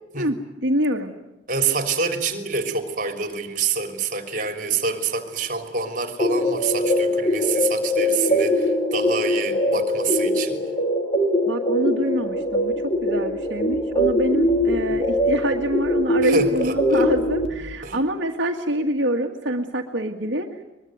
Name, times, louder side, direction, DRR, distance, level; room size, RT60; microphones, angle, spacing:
voice 1, 0.2-1.1 11.5-20.5, right 1 dB, 65° right, 2 dB, 1.9 m, -26 dB
voice 2, 1.5-10.6 16.2-17.0 17.8-18.0, right 5 dB, 40° right, 6 dB, 3.4 m, -26 dB
sound 1, 6.2-17.5, left 1 dB, 30° left, 2.5 m, -22 dB
sound 2, 12.0-17.7, left 1 dB, 70° left, 6.8 m, -43 dB
23.0 x 22.5 x 9.4 m, 0.97 s
head